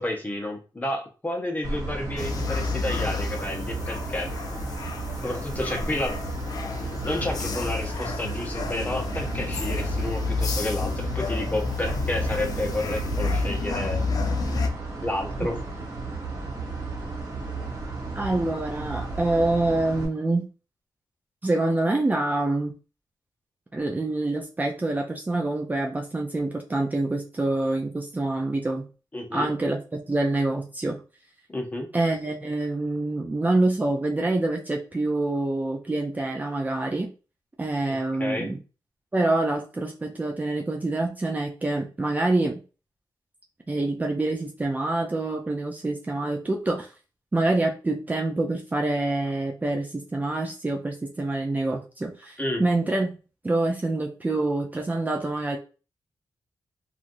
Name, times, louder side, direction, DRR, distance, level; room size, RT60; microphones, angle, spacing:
voice 1, 0.0-4.3 5.2-6.2 7.0-14.0 15.0-15.6 29.1-29.5 31.5-31.9 37.9-38.5 52.4-52.6, left 1 dB, 20° left, 3 dB, 0.9 m, -30 dB
sound 1, 1.6-20.0, right 3 dB, 45° right, 1.3 m, -34 dB
sound 2, 2.2-14.7, left 4 dB, 55° left, 0.5 m, -30 dB
voice 2, 18.2-20.5 21.4-22.7 23.7-28.9 29.3-29.8 30.1-31.0 31.9-37.1 37.6-38.6 39.1-42.6 43.7-46.9 47.3-53.1 53.4-55.6, right 2 dB, 20° right, 0 dB, 0.5 m, -26 dB
3.1 x 2.5 x 2.6 m, 0.34 s
cardioid pair, 80°, 8 cm